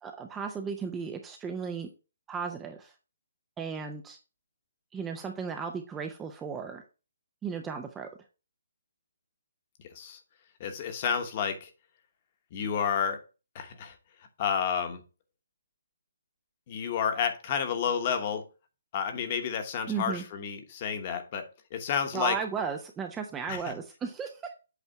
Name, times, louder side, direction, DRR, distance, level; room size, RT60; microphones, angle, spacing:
voice 1, 0.0-1.9 2.3-2.9 3.6-4.2 4.9-6.8 7.4-8.1 19.9-20.2 22.1-24.4, right 6 dB, 10° right, 5 dB, 0.5 m, -35 dB
voice 2, 10.6-11.7 12.5-13.2 13.5-14.0 14.4-15.0 16.7-18.4 18.9-21.4 21.7-22.4 23.5-23.6, left 7 dB, 25° left, 8 dB, 1.1 m, -30 dB
8.1 x 3.4 x 5.7 m, 0.32 s
hypercardioid pair, 170°, 0 cm